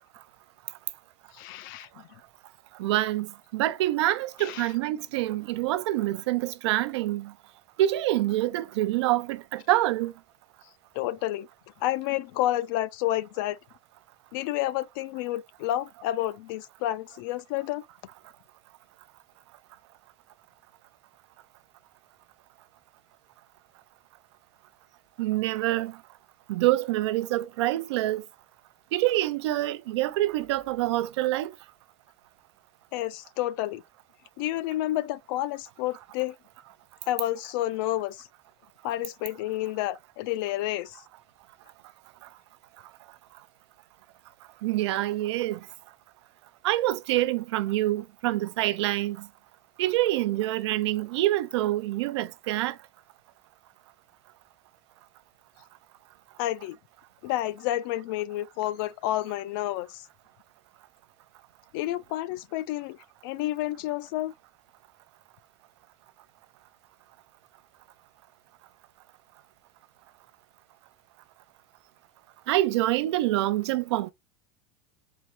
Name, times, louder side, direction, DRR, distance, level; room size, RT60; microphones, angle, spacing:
voice 1, 1.3-2.0 4.4-4.7 11.0-11.5 11.8-13.6 14.3-17.8 32.9-33.8 34.4-36.4 37.1-38.2 38.8-41.0 56.4-56.8 57.2-60.0 61.7-63.0 63.2-64.3, left 14 dB, 55° left, 0.4 m, -30 dB
voice 2, 2.8-7.3 7.8-10.1 25.2-26.0 26.5-28.2 28.9-31.5 44.6-45.6 46.6-49.3 49.8-52.8 72.5-74.1, right 15 dB, 85° right, 0.5 m, -26 dB
4.4 x 2.1 x 4.4 m
supercardioid pair, 170°, 14 cm